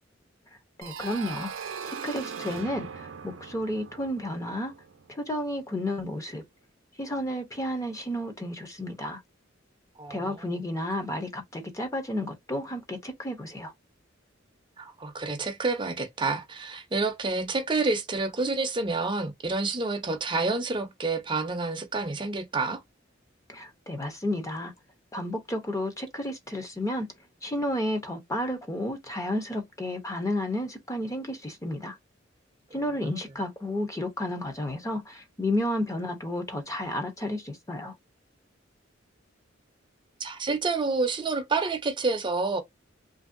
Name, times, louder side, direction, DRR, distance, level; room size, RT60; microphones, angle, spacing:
voice 1, 0.8-1.5 1.8-4.7 5.1-6.4 7.0-9.2 10.1-13.7 23.5-24.7 25.1-27.1 27.4-32.0 32.7-37.9, left 1 dB, 15° left, 0.6 m, -32 dB
sound 1, 0.8-5.5, right 6 dB, 80° right, 0.5 m, -40 dB
voice 2, 10.0-10.6 14.8-22.8 40.2-42.6, right 3 dB, 25° right, 0.6 m, -28 dB
2.9 x 2.6 x 2.4 m
head